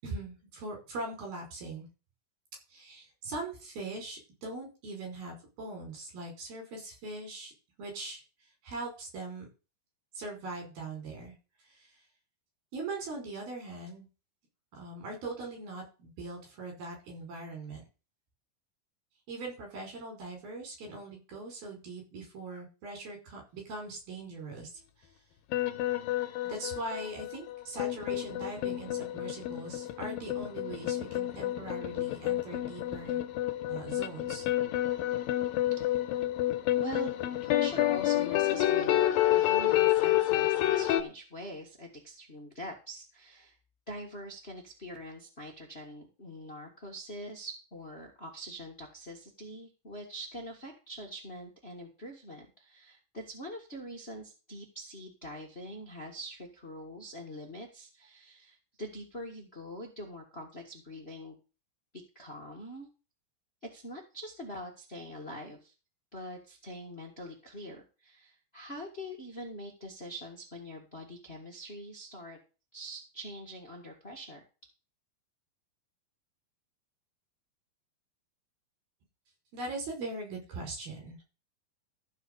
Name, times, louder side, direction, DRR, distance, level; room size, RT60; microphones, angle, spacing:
voice 1, 0.0-1.9 2.7-7.5 7.8-8.2 8.6-9.5 10.1-11.3 11.7-11.9 12.7-14.1 14.7-17.8 19.3-24.8 26.4-33.2 33.7-34.5 79.5-81.2, right 2 dB, 80° right, 1 dB, 7.1 m, -41 dB
sound 1, 25.5-41.0, left 14 dB, 80° left, 2.7 m, -29 dB
voice 2, 36.7-37.1 37.4-43.5 43.9-61.4 62.1-62.9 63.6-65.7 66.1-72.4 72.7-74.4, equal, 30° left, 1 dB, 1.1 m, -44 dB
14.0 x 4.9 x 6.8 m, 0.32 s
omnidirectional pair, 4.2 m